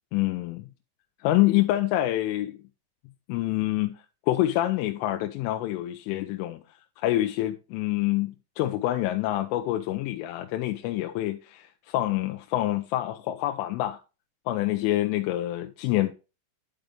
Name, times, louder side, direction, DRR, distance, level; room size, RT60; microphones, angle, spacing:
voice 1, 0.1-0.7 1.2-2.6 3.3-4.0 4.3-6.6 7.0-14.0 14.5-16.1, left 15 dB, 90° left, 3.2 m, -26 dB
11.5 x 5.1 x 3.3 m
omnidirectional pair, 5.5 m